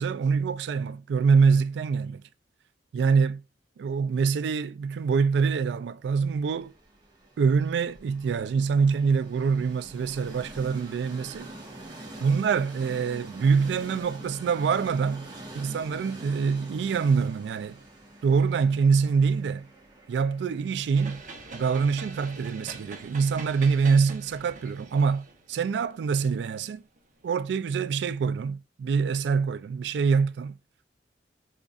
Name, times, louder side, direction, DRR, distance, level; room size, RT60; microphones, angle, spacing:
voice 1, 0.0-2.2 2.9-3.4 3.8-6.7 7.4-11.5 12.2-17.8 18.2-19.7 20.1-21.2 21.5-26.8 27.2-30.5, right 5 dB, 70° right, 0.3 m, -25 dB
Train, 6.4-24.5, right 1 dB, 25° right, 1.2 m, -46 dB
sound 1, 20.9-27.3, right 3 dB, 45° right, 0.8 m, -44 dB
5.2 x 3.6 x 2.3 m
head